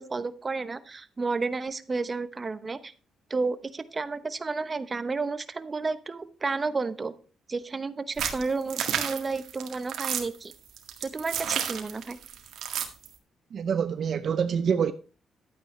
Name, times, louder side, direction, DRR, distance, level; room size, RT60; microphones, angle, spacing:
voice 1, 0.0-2.9 3.3-7.1 7.5-10.5 11.0-12.2, right 4 dB, 30° right, 0.9 m, -31 dB
sound 1, 8.2-13.1, right 9 dB, 75° right, 1.8 m, -31 dB
voice 2, 13.5-14.9, right 7 dB, 55° right, 0.6 m, -26 dB
11.5 x 9.2 x 3.2 m
cardioid pair, 90°, 0 cm